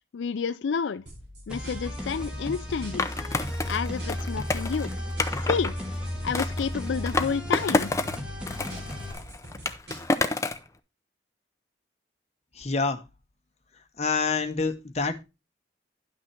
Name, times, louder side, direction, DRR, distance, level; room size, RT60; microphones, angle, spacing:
voice 1, 0.1-1.0 1.5-3.1 3.7-4.9 5.4-5.7 6.2-7.9, left 6 dB, 80° left, 0.4 m, -30 dB
sound 1, 1.1-3.1 3.4-5.5 5.8-7.8 8.1-10.4, equal, 65° right, 4.2 m, -45 dB
sound 2, 1.5-9.1, left 1 dB, 5° right, 1.8 m, -34 dB
Skateboard, 3.0-5.7 6.3-8.2 8.5-10.7, left 2 dB, 15° left, 0.6 m, -29 dB
voice 2, 12.6-13.0 14.0-15.2, left 4 dB, 35° left, 1.0 m, -27 dB
11.0 x 6.0 x 4.4 m
head